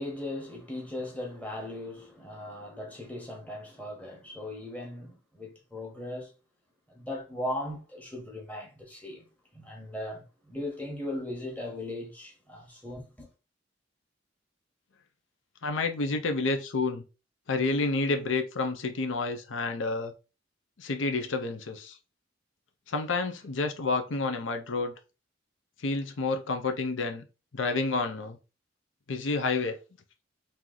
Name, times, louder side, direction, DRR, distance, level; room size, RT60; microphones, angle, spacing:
voice 1, 0.0-6.3 6.9-9.3 9.5-13.3, left 1 dB, 10° left, 1.1 m, -38 dB
voice 2, 15.6-17.0 17.5-20.1 20.8-22.0 22.9-24.9 25.8-27.2 27.5-28.4 29.1-29.8, left 3 dB, 90° left, 0.7 m, -29 dB
3.1 x 2.8 x 3.8 m
head